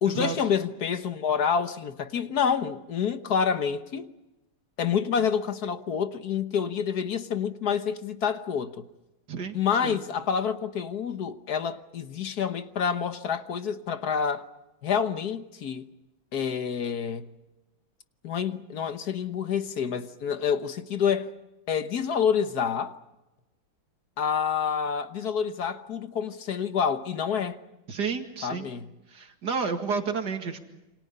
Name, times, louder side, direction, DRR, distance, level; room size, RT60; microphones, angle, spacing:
voice 1, 0.0-4.1 4.8-8.9 9.5-14.4 14.8-15.9 16.3-17.3 18.2-21.3 21.7-23.0 24.2-27.6 28.4-28.9, left 7 dB, 55° left, 1.5 m, -28 dB
voice 2, 27.9-28.7 29.1-30.6, right 5 dB, 50° right, 2.6 m, -31 dB
28.5 x 26.5 x 5.5 m
omnidirectional pair, 2.3 m